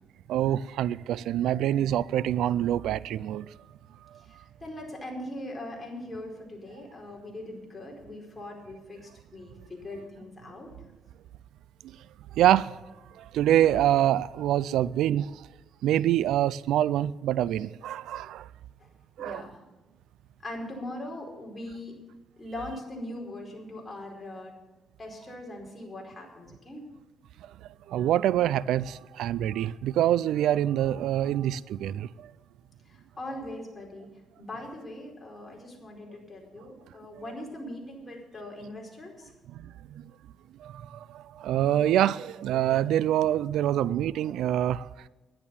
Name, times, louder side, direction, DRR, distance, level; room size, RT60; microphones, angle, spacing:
voice 1, 0.3-3.5 12.4-12.8 13.2-15.5 15.8-18.5 19.2-19.5 27.9-32.3 39.5-39.7 40.6-45.1, right 12 dB, 85° right, 0.3 m, -25 dB
voice 2, 4.2-10.7 18.8-18.9 19.2-19.6 20.4-21.9 22.4-24.5 25.0-26.8 32.9-34.1 34.4-39.3, left 1 dB, 20° left, 4.7 m, -41 dB
11.0 x 11.0 x 7.1 m
cardioid pair, 90°, 0 cm